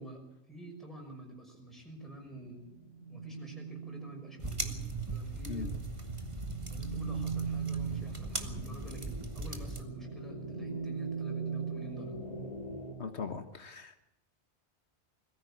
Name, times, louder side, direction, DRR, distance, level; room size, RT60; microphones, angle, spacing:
voice 1, 0.0-2.7 3.1-5.7 6.7-12.2, right 1 dB, ahead, 0 dB, 5.7 m, -48 dB
sound 1, 1.7-12.9, right 5 dB, 35° left, 4.2 m, -40 dB
sound 2, 4.4-9.8, right 3 dB, 30° right, 1.8 m, -39 dB
voice 2, 13.0-14.0, left 5 dB, 85° left, 8 dB, 1.7 m, -39 dB
22.0 x 14.5 x 8.4 m, 0.84 s
omnidirectional pair, 1.1 m